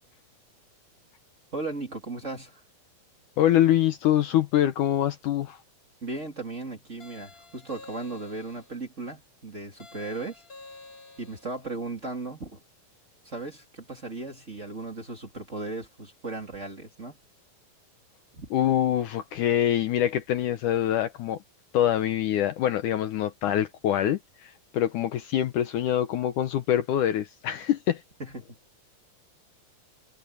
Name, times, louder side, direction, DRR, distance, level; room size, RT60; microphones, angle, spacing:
voice 1, 1.5-2.6 6.0-10.4 11.2-12.6 13.2-17.2 18.3-18.5 28.2-28.6, right 3 dB, 20° right, 2.7 m, -36 dB
voice 2, 3.4-5.6 18.5-21.4 21.7-28.0, left 11 dB, 70° left, 2.2 m, -25 dB
sound 1, 7.0-8.8 9.8-11.6, left 3 dB, 25° left, 2.5 m, -49 dB
omnidirectional pair, 4.1 m